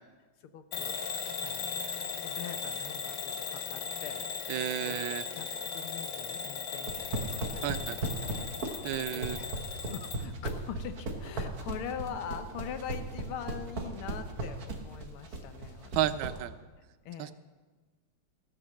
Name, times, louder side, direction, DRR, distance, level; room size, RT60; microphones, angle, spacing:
voice 1, 0.5-1.0 1.4-15.9 17.1-17.3, left 8 dB, 85° left, 9 dB, 1.7 m, -43 dB
Bell / Alarm, 0.7-10.3, left 5 dB, 60° left, 1.3 m, -37 dB
voice 2, 4.5-5.2 7.6-8.0 8.8-9.4 16.0-16.5 17.2-17.3, right 12 dB, 75° right, 14 dB, 1.3 m, -32 dB
sound 1, 6.8-16.4, right 2 dB, 50° right, 1.6 m, -36 dB
16.5 x 7.6 x 6.5 m, 1.3 s
omnidirectional pair, 2.3 m